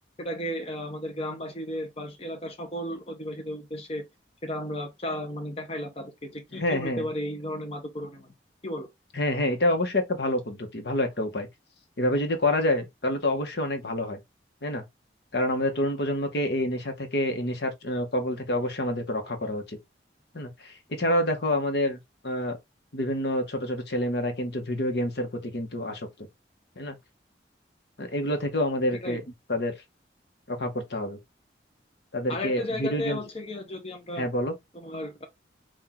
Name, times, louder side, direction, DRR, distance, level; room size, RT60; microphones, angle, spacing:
voice 1, 0.2-4.1 4.4-8.3 8.6-8.9 29.0-29.2 32.3-34.3 34.7-35.3, left 1 dB, 35° left, 0.8 m, -34 dB
voice 2, 6.5-7.1 9.1-11.5 12.0-14.2 14.6-14.8 15.3-19.8 20.3-22.6 22.9-26.3 26.8-27.0 28.0-29.2 29.5-29.7 30.5-31.2 32.1-33.2 34.2-34.5, left 1 dB, 65° left, 1.0 m, -27 dB
4.4 x 2.4 x 3.9 m
head